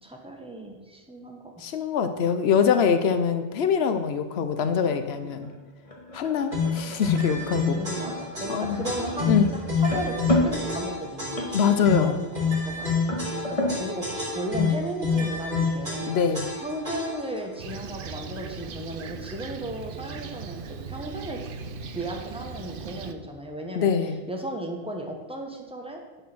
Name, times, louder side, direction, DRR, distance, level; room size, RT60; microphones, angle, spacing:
voice 1, 0.0-1.5 5.2-5.3 7.6-11.6 11.9-12.3 12.6-13.0 13.5-16.1 16.6-20.6 20.9-21.4 21.9-23.9 24.3-26.2, right 1 dB, 5° right, 1 dB, 1.4 m, -35 dB
voice 2, 1.6-5.5 6.1-7.8 8.5-8.9 9.3-9.5 11.5-12.2 14.6-14.7 16.1-16.5 23.7-24.2, left 7 dB, 80° left, 9 dB, 1.0 m, -24 dB
sound 1, 4.0-13.8, left 1 dB, 35° left, 1.7 m, -33 dB
sound 2, 6.5-17.4, left 4 dB, 45° right, 3.5 m, -28 dB
Fixed-wing aircraft airplane, 17.6-23.1, right 6 dB, 60° right, 0.8 m, -38 dB
11.0 x 5.4 x 6.2 m, 1.3 s
omnidirectional pair, 1.0 m